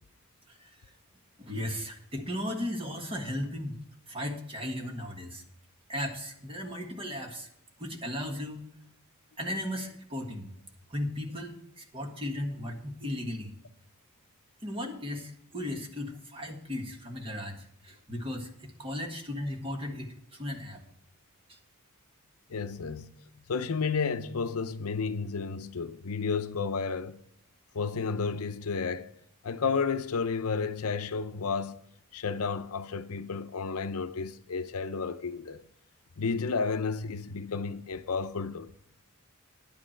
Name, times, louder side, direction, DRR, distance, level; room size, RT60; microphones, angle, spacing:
voice 1, 0.5-0.9 1.4-3.8 4.1-5.4 5.9-7.5 7.8-8.6 9.4-10.5 10.9-13.5 14.6-20.8 21.5-21.6, left 1 dB, 25° right, 1.6 m, -36 dB
voice 2, 22.5-23.2 23.5-27.2 27.7-29.1 29.4-31.8 32.1-35.6 36.2-38.7, left 5 dB, 75° left, 0.6 m, -32 dB
10.5 x 8.5 x 4.4 m
head